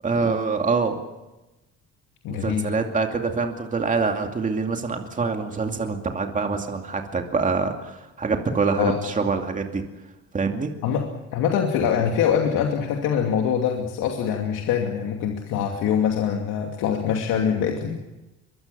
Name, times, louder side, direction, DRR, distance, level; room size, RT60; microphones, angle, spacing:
voice 1, 0.0-1.0 2.3-9.8 10.3-10.7, right 4 dB, 25° right, 3 dB, 2.5 m, -25 dB
voice 2, 2.2-2.7 8.8-9.0 10.8-11.0 11.3-18.0, left 8 dB, 85° left, 2 dB, 2.7 m, -24 dB
23.5 x 22.5 x 6.9 m, 1.0 s
cardioid pair, 115°, 30 cm